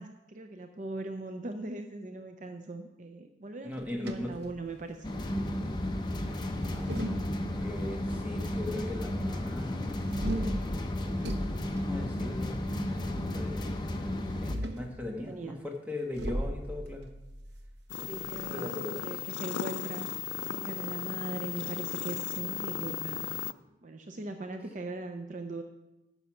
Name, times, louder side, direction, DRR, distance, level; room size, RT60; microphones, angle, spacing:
voice 1, 0.0-5.1 15.0-15.7 18.1-20.1 20.4-23.3 23.8-25.6, right 2 dB, 45° right, 6 dB, 0.5 m, -40 dB
voice 2, 3.6-4.4 6.2-7.2 7.5-10.8 11.8-12.7 13.1-13.7 14.0-14.1 14.4-17.1 18.0-19.2, left 1 dB, 10° right, 2 dB, 1.2 m, -40 dB
sound 1, 3.7-5.1 6.4-7.8 10.1-12.7 14.2-15.0 16.1-18.5, equal, 65° right, 0.9 m, -37 dB
sound 2, 5.0-14.6, left 1 dB, 25° left, 0.7 m, -33 dB
sound 3, 17.9-23.5, left 10 dB, 75° left, 0.3 m, -36 dB
9.4 x 6.6 x 5.9 m, 1.0 s
head